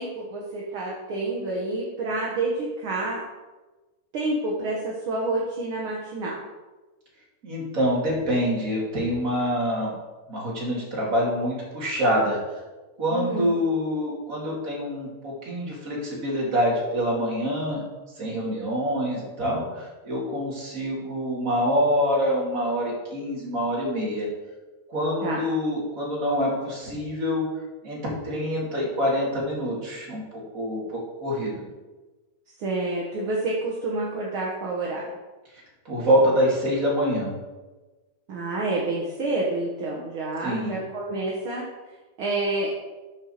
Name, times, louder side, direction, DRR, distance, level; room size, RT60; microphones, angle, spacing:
voice 1, 0.0-3.2 4.1-6.4 13.1-13.5 25.2-25.5 32.6-35.0 38.3-41.7 42.2-42.7, right 2 dB, 55° right, -3 dB, 1.6 m, -28 dB
voice 2, 7.4-9.9 10.3-12.4 13.0-17.8 18.2-24.3 24.9-27.5 27.8-30.2 30.5-31.6 35.8-37.4 40.4-40.8, equal, 30° right, -5 dB, 2.6 m, -26 dB
6.5 x 6.3 x 6.5 m, 1.2 s
omnidirectional pair, 3.4 m